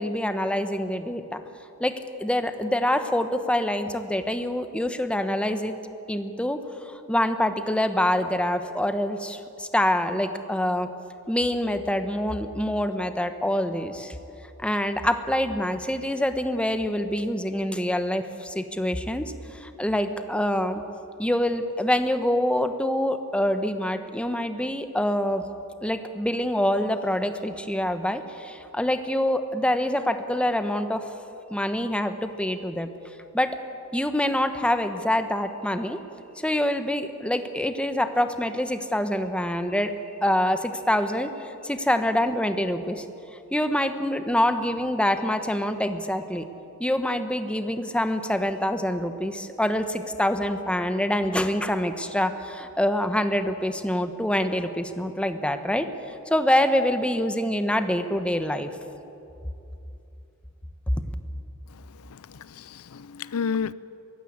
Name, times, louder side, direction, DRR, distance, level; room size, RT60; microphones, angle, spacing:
voice 1, 0.0-1.4 1.8-5.7 6.1-10.9 11.3-14.1 14.6-20.8 21.2-25.4 25.8-31.0 31.5-32.9 33.3-33.6 33.9-36.0 36.4-39.9 40.2-43.0 43.5-46.5 46.8-55.9 56.3-58.7, left 1 dB, 5° left, 8 dB, 1.0 m, -25 dB
voice 2, 61.7-63.7, left 6 dB, 90° left, 18 dB, 0.5 m, -32 dB
22.5 x 15.5 x 8.7 m, 2.8 s
head